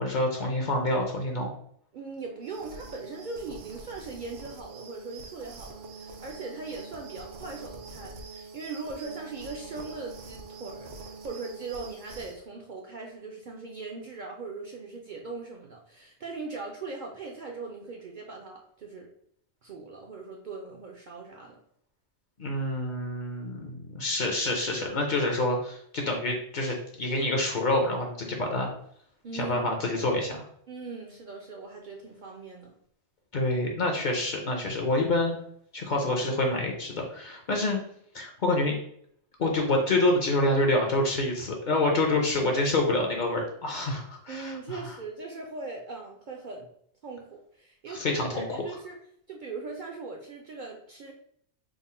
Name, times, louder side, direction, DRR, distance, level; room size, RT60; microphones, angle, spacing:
voice 1, 0.0-1.5 22.4-28.7 29.3-30.5 33.3-35.4 35.7-37.8 38.1-38.7 39.4-44.9 47.9-48.6, left 2 dB, 50° left, 1 dB, 0.6 m, -27 dB
voice 2, 1.9-19.1 19.6-21.6 29.2-29.8 30.7-32.8 44.3-46.7 47.0-49.0 49.3-51.1, right 4 dB, 60° right, 0 dB, 0.5 m, -40 dB
sound 1, 2.4-12.4, right 3 dB, 90° right, 0.9 m, -45 dB
3.6 x 2.0 x 4.2 m, 0.67 s
omnidirectional pair, 1.2 m